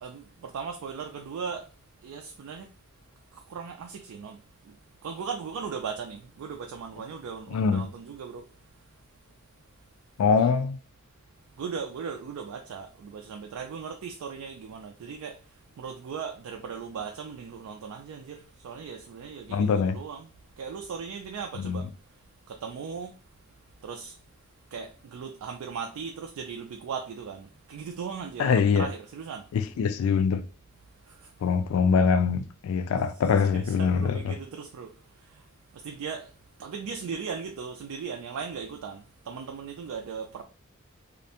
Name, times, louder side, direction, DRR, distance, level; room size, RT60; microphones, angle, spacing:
voice 1, 0.0-1.7 2.0-2.7 3.3-4.4 4.6-4.7 5.0-8.5 10.4-10.5 11.6-15.4 15.8-20.3 20.6-21.9 22.5-23.2 23.8-24.2 24.7-29.4 31.1-31.3 33.4-34.9 35.2-35.4 35.7-36.3 36.6-40.4, right 6 dB, 85° right, 0.3 m, -38 dB
voice 2, 7.5-7.9 10.2-10.8 19.5-20.0 21.6-21.8 28.4-28.9 29.5-30.4 31.4-34.3, left 6 dB, 75° left, 0.3 m, -23 dB
2.5 x 2.1 x 2.7 m
head